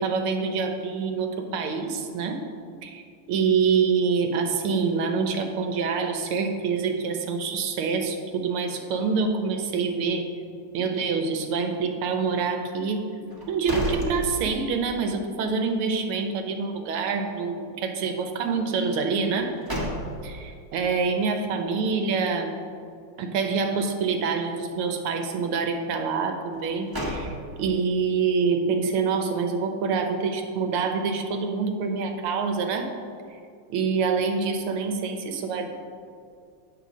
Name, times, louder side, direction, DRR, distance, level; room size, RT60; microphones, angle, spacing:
voice 1, 0.0-2.4 2.8-3.0 3.3-10.3 10.7-13.1 13.5-19.6 20.2-22.6 23.2-32.9 33.3-33.4 33.7-35.7, right 5 dB, 80° right, 5 dB, 1.6 m, -26 dB
sound 1, 13.3-14.9 15.3-15.4 19.2-20.5 26.5-27.8, equal, 25° right, 0.4 m, -32 dB
8.4 x 4.1 x 6.1 m, 2.3 s
omnidirectional pair, 2.4 m